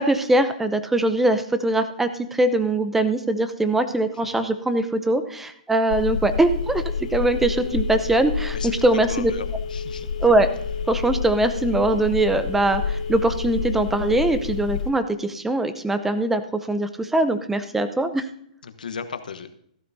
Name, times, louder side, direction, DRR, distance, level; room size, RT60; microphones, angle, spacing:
voice 1, 0.0-6.8 7.1-9.3 10.2-10.5 10.9-16.4 16.7-18.3, right 2 dB, 5° right, 10 dB, 0.6 m, -22 dB
Telephone, 5.9-14.9, left 5 dB, 65° left, 3.3 m, -29 dB
voice 2, 9.1-10.1 18.6-19.5, left 6 dB, 85° left, 9 dB, 1.1 m, -35 dB
14.5 x 12.5 x 2.7 m, 0.68 s
hypercardioid pair, 145°, 4 cm